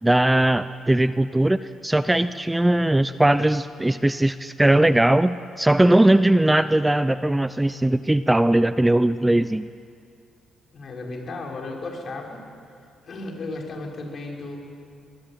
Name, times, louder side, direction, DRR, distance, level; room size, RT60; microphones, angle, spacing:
voice 1, 0.0-9.6, right 1 dB, 10° right, 13 dB, 0.6 m, -19 dB
voice 2, 10.7-12.4 13.1-14.6, left 2 dB, 50° left, 0 dB, 5.7 m, -34 dB
25.0 x 20.5 x 8.9 m, 2.3 s
cardioid pair, 90°, 0 cm